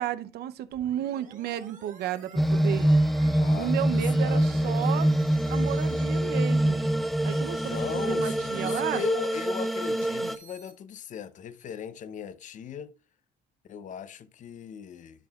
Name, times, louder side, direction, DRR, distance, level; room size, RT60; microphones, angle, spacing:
voice 1, 0.0-3.0 3.6-5.1 5.5-6.9 7.2-9.0 10.2-10.3, right 12 dB, 70° right, 0.6 m, -33 dB
sound 1, 0.7-10.7, right 6 dB, 50° right, 1.8 m, -52 dB
sound 2, 2.4-10.4, right 1 dB, ahead, 0.4 m, -25 dB
voice 2, 3.3-5.0 7.7-12.9 13.7-15.3, left 8 dB, 50° left, 0.7 m, -38 dB
10.5 x 6.3 x 2.3 m
cardioid pair, 110°, 17 cm